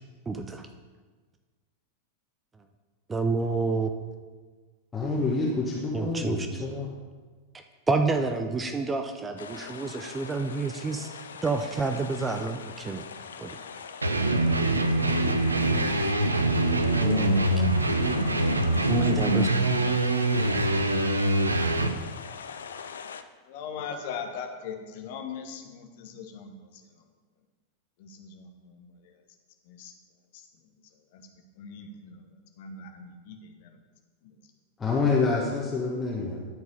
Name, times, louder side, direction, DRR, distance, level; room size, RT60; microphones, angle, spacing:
voice 1, 0.3-0.7 3.1-3.9 5.9-6.6 7.9-11.1 11.4-13.0 13.4-13.6 17.0-17.5 18.9-19.5, right 4 dB, 15° right, 6 dB, 0.6 m, -29 dB
voice 2, 4.9-6.9 34.8-36.4, left 3 dB, 15° left, -4 dB, 1.3 m, -27 dB
sound 1, 9.4-23.2, left 6 dB, 65° left, 0.5 m, -42 dB
sound 2, 14.0-22.0, right 1 dB, 80° right, 0.6 m, -24 dB
voice 3, 23.5-26.8 28.0-29.1 29.7-29.9 30.3-30.4 31.1-31.3 31.6-32.3 32.6-33.8 34.2-34.3, left 6 dB, 50° left, 4 dB, 1.2 m, -40 dB
11.5 x 4.6 x 5.7 m, 1.4 s
figure-of-eight pair, 90°, 0 cm